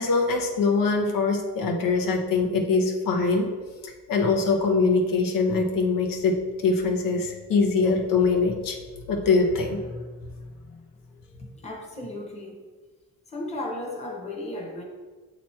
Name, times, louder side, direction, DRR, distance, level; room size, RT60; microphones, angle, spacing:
voice 1, 0.0-3.5 3.8-8.8 9.1-10.0, left 4 dB, 85° left, 2 dB, 0.9 m, -23 dB
voice 2, 11.1-12.6 13.3-14.8, left 1 dB, 20° left, 0 dB, 0.9 m, -35 dB
7.5 x 3.1 x 4.3 m, 1.4 s
wide cardioid pair, 155°, 33 cm